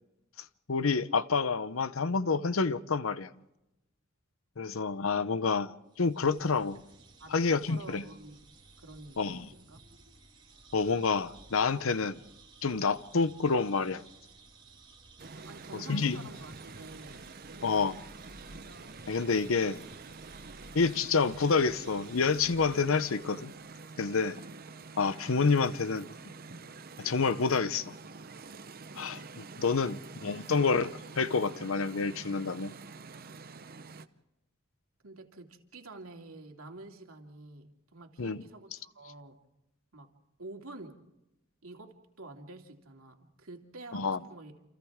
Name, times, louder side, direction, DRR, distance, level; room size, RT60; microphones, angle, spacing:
voice 1, 0.7-3.3 4.6-6.8 7.3-8.0 9.2-9.5 10.7-12.2 12.6-14.0 15.7-16.2 17.6-18.0 19.1-19.8 20.7-23.5 24.0-24.4 25.0-26.0 27.0-27.9 29.0-32.7 38.2-38.4 43.9-44.2, left 4 dB, 75° left, 0.8 m, -28 dB
sound 1, 5.9-23.6, right 3 dB, 25° right, 5.2 m, -56 dB
voice 2, 7.2-9.8 15.4-17.2 17.5-17.9 25.8-26.0 35.0-39.4 39.9-40.1 40.4-41.0 41.6-44.6, right 2 dB, 90° right, 2.7 m, -49 dB
sound 2, 15.2-34.1, right 4 dB, 45° right, 0.9 m, -47 dB
29.0 x 27.5 x 3.7 m
head